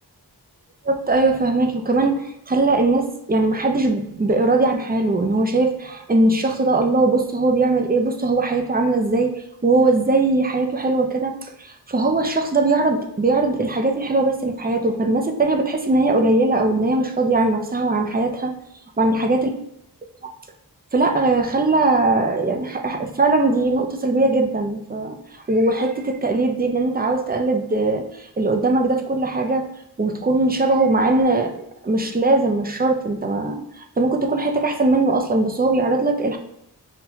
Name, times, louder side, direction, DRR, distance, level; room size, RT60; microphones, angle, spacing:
voice 1, 0.8-9.3 9.6-11.3 11.6-18.5 19.0-19.5 20.9-25.2 25.5-29.7 30.0-36.4, right 2 dB, 25° right, 4 dB, 0.4 m, -20 dB
5.5 x 2.2 x 2.8 m, 0.79 s
wide cardioid pair, 40°, 41 cm